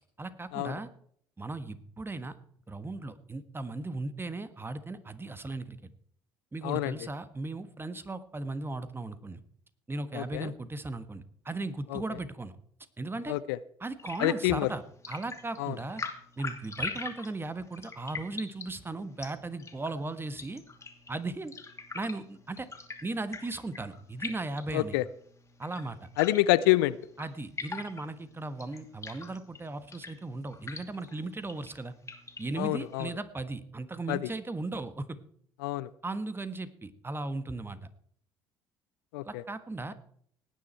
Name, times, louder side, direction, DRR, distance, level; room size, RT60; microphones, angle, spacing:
voice 1, 0.2-0.9 1.4-2.3 2.7-5.8 6.5-9.4 9.9-12.5 13.0-13.3 13.8-16.0 16.4-20.6 21.1-21.5 21.9-22.7 23.0-25.0 25.6-26.1 27.2-31.9 32.4-35.2 36.0-37.8 39.2-39.9, right 2 dB, 20° right, 12 dB, 1.5 m, -37 dB
voice 2, 10.1-10.5 11.9-12.0 13.3-13.6 14.2-14.7 15.6-15.7 24.7-25.0 26.2-27.0 32.6-33.1 34.1-34.2 35.6-35.9 39.1-39.4, left 17 dB, 70° left, 18 dB, 0.5 m, -27 dB
sound 1, 14.0-33.1, left 4 dB, 25° left, 2.6 m, -44 dB
18.5 x 9.9 x 4.5 m, 0.63 s
figure-of-eight pair, 55°, 12 cm